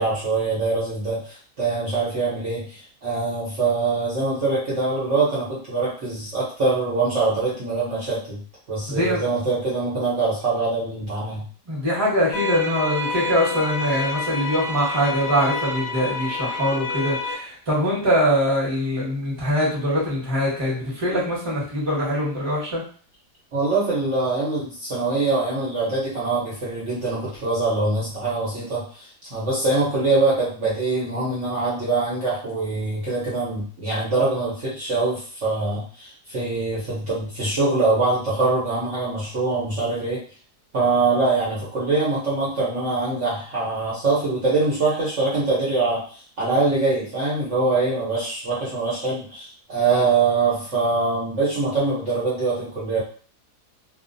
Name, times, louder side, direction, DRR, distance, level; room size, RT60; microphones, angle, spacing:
voice 1, 0.0-8.4 8.7-11.5 23.5-40.2 40.7-53.0, right 3 dB, 55° right, -8 dB, 1.0 m, -23 dB
voice 2, 8.9-9.2 11.7-22.8, equal, 20° right, -6 dB, 0.9 m, -23 dB
sound 1, 12.3-17.3, left 3 dB, 65° left, 0.7 m, -28 dB
2.5 x 2.4 x 2.5 m, 0.43 s
omnidirectional pair, 1.8 m